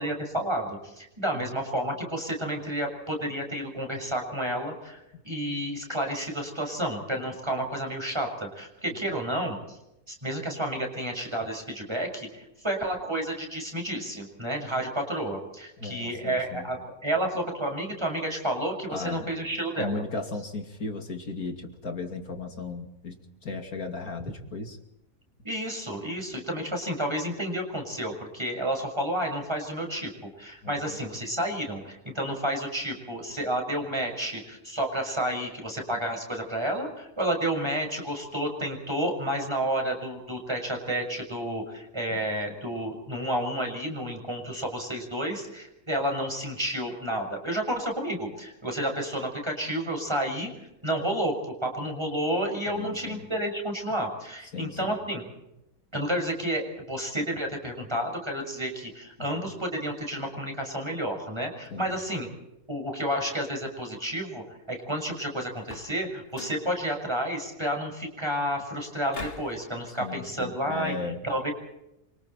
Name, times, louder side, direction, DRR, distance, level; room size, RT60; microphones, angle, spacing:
voice 1, 0.0-9.8 10.1-12.3 12.6-16.8 17.0-20.0 25.4-30.1 30.4-50.5 50.8-55.2 55.9-62.3 62.7-70.9 71.2-71.5, right 1 dB, 15° right, 2 dB, 6.7 m, -30 dB
voice 2, 15.8-16.7 18.9-19.3 19.7-24.8 30.6-31.0 42.1-42.2 52.7-53.3 54.5-55.0 59.2-59.5 61.7-62.2 69.9-71.2, left 3 dB, 70° left, 4 dB, 3.0 m, -36 dB
sound 1, 65.6-66.0 66.3-66.7 69.1-69.6, left 2 dB, 40° left, 2.6 m, -41 dB
28.5 x 25.5 x 4.5 m, 0.87 s
omnidirectional pair, 1.6 m